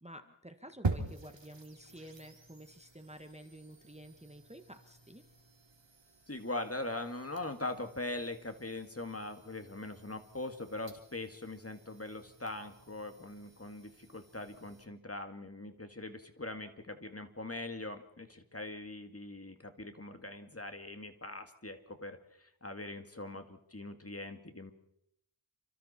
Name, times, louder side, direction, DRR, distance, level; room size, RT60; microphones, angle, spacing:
voice 1, 0.0-5.2, right 1 dB, 15° right, 7 dB, 1.5 m, -51 dB
sound 1, 0.8-14.8, right 3 dB, 60° right, 3.2 m, -45 dB
voice 2, 6.3-24.7, left 2 dB, 30° left, 7 dB, 2.0 m, -42 dB
28.5 x 25.0 x 4.3 m, 0.77 s
wide cardioid pair, 60°, 49 cm